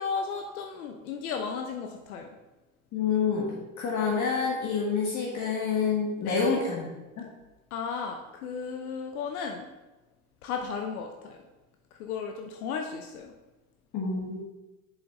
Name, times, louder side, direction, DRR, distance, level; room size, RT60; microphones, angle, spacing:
voice 1, 0.0-2.3 6.2-6.6 7.7-9.7 10.4-11.4 11.9-13.3, left 5 dB, 85° left, 4 dB, 0.8 m, -34 dB
voice 2, 2.9-6.9 7.2-7.3 13.9-14.4, left 5 dB, 40° left, -3 dB, 1.6 m, -28 dB
6.9 x 5.0 x 3.8 m, 1.1 s
hypercardioid pair, 90°, 43 cm